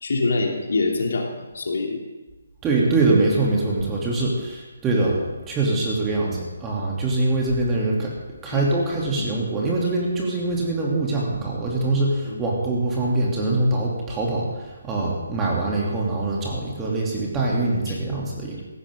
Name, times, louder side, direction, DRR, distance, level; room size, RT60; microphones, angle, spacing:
voice 1, 0.0-2.0 8.5-8.6 9.2-9.3 12.2-12.4 17.9-18.0, left 3 dB, 60° left, 1 dB, 2.7 m, -25 dB
voice 2, 2.6-8.1 8.4-18.6, right 2 dB, 15° right, -4 dB, 2.9 m, -23 dB
17.0 x 15.5 x 3.7 m, 1.2 s
figure-of-eight pair, 140°, 0 cm